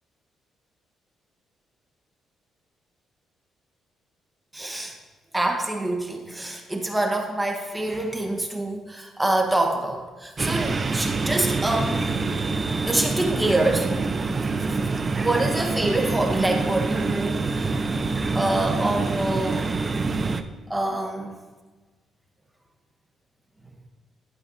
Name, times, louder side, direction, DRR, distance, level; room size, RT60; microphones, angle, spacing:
voice 1, 4.5-5.0 5.3-12.1 12.8-13.9 15.0-17.7 18.3-19.7 20.7-21.4, right 1 dB, 10° right, 2 dB, 1.2 m, -26 dB
sound 1, 10.4-20.4, right 3 dB, 35° right, 0.5 m, -26 dB
11.5 x 7.1 x 2.7 m, 1.3 s
cardioid pair, 90°, 0 cm